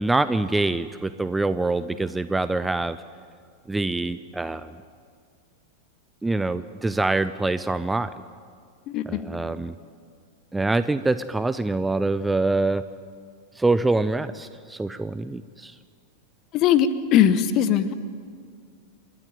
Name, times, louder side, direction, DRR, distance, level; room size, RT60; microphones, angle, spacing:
voice 1, 0.0-3.0 3.7-4.7 6.2-8.1 9.1-9.7 10.5-12.8 13.6-15.7, right 2 dB, 10° right, 13 dB, 0.5 m, -25 dB
voice 2, 8.9-9.3 16.5-17.9, left 9 dB, 35° left, 14 dB, 1.1 m, -20 dB
28.0 x 12.5 x 9.2 m, 2.1 s
figure-of-eight pair, 90°, 0 cm